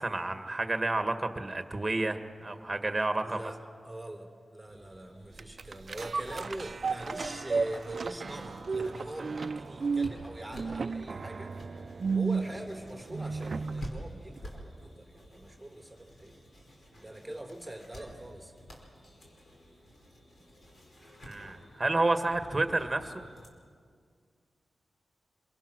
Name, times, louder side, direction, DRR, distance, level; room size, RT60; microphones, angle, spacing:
voice 1, 0.0-3.4 21.3-23.2, right 2 dB, 25° right, 7 dB, 1.8 m, -30 dB
voice 2, 3.2-11.6 12.0-16.4 16.9-18.5, right 1 dB, 5° right, 3 dB, 3.5 m, -43 dB
sound 1, 4.7-23.5, equal, 55° left, 4.9 m, -50 dB
sound 2, 5.4-13.9 14.4-14.5, right 4 dB, 55° right, 0.5 m, -33 dB
25.5 x 23.0 x 6.2 m, 2.1 s
cardioid pair, 70°, 0 cm